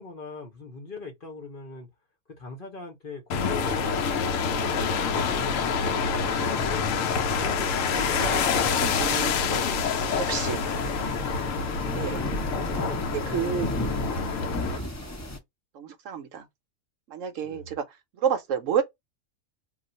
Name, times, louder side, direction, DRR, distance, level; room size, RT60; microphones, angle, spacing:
voice 1, 0.0-1.9 2.3-6.8 7.3-11.2 12.5-13.6 14.3-14.6 17.4-17.7, left 3 dB, 45° left, 0.9 m, -42 dB
sound 1, 3.3-14.8, left 5 dB, 70° left, 0.9 m, -27 dB
sound 2, 6.2-11.4, equal, 5° left, 1.2 m, -44 dB
sound 3, 8.0-15.4, left 2 dB, 20° left, 0.4 m, -35 dB
voice 2, 8.2-9.4 10.2-10.6 11.9-12.2 13.3-13.7 14.7-14.9 15.7-16.5 17.1-17.8 18.2-18.8, right 7 dB, 70° right, 0.9 m, -30 dB
2.4 x 2.3 x 3.9 m
omnidirectional pair, 1.5 m